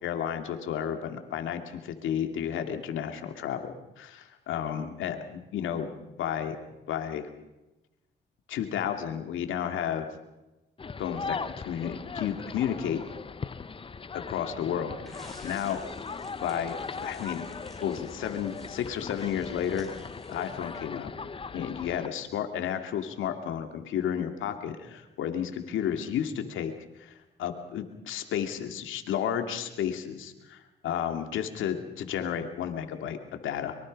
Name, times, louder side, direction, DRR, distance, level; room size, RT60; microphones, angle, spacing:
voice 1, 0.0-5.9 6.2-6.6 6.9-7.3 8.5-10.1 11.0-13.0 14.1-15.8 16.4-17.5 17.8-19.9 20.3-21.1 21.5-33.8, left 9 dB, 80° left, 6 dB, 2.4 m, -32 dB
sound 1, 10.8-22.1, left 5 dB, 25° left, 0.8 m, -39 dB
sound 2, 15.0-20.9, left 1 dB, ahead, 7.4 m, -53 dB
24.0 x 23.0 x 5.4 m, 1.0 s
cardioid pair, 90°, 20 cm